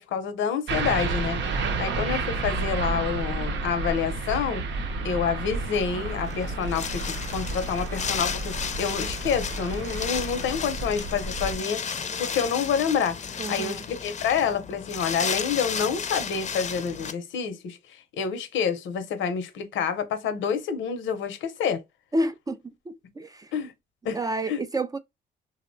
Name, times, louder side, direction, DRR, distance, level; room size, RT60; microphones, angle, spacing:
voice 1, 0.0-4.6 5.0-13.2 13.5-21.8 23.5-23.7 24.0-24.2 24.5-24.6, left 7 dB, 75° left, 0.7 m, -28 dB
sound 1, 0.7-11.6, right 3 dB, 65° right, 0.6 m, -31 dB
Wind, 5.9-17.1, left 6 dB, 35° left, 0.5 m, -33 dB
voice 2, 13.4-13.8 22.1-23.5 24.1-25.0, right 1 dB, 20° right, 0.3 m, -30 dB
2.8 x 2.0 x 2.6 m
cardioid pair, 90°, 20 cm